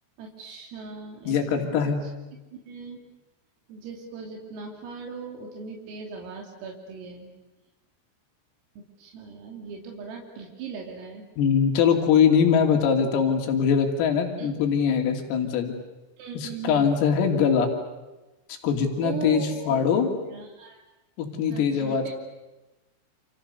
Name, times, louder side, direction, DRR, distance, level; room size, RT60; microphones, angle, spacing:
voice 1, 0.2-2.1 2.5-3.0 3.7-7.3 8.8-11.3 14.4-14.5 16.2-16.9 19.0-20.8 21.5-22.1, right 5 dB, 85° right, 0 dB, 5.7 m, -39 dB
voice 2, 1.3-2.0 11.4-15.7 16.4-17.7 18.5-20.1 21.2-22.1, left 7 dB, 85° left, 3 dB, 5.5 m, -22 dB
30.0 x 28.5 x 6.9 m, 1.1 s
omnidirectional pair, 5.9 m